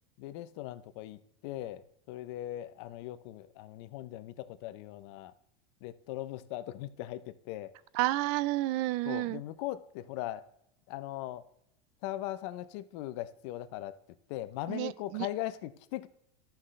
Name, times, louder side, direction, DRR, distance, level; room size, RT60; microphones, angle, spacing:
voice 1, 0.2-5.3 5.8-7.7 9.0-10.4 10.9-11.5 12.0-14.0 14.3-16.1, left 14 dB, 60° left, 0.7 m, -39 dB
voice 2, 7.9-9.4 14.7-15.3, right 17 dB, 55° right, 0.4 m, -30 dB
13.0 x 5.8 x 3.2 m
supercardioid pair, 130°, 16 cm